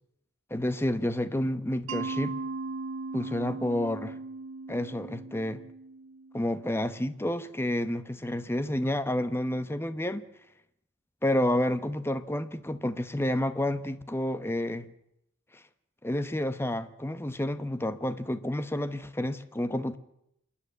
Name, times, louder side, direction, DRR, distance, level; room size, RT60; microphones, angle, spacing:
voice 1, 0.5-2.3 3.1-4.2 4.7-5.6 6.3-10.2 11.2-14.9 16.0-20.0, left 1 dB, 10° left, 12 dB, 0.9 m, -30 dB
Mallet percussion, 1.9-6.7, right 3 dB, 80° right, 0.8 m, -38 dB
27.0 x 10.0 x 9.5 m, 0.80 s
head